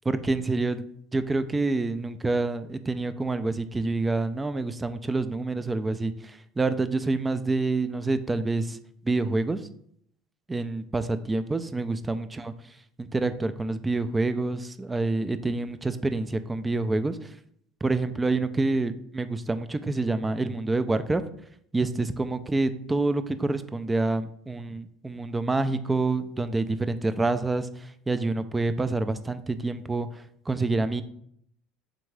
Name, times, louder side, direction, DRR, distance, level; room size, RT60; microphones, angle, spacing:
voice 1, 0.1-0.8 1.1-8.8 9.1-9.6 10.5-12.5 13.0-17.2 17.8-21.2 21.7-27.7 28.1-30.1 30.5-31.0, right 3 dB, 15° right, 11 dB, 0.3 m, -27 dB
3.8 x 3.4 x 3.2 m, 0.67 s
hypercardioid pair, 75°, 0 cm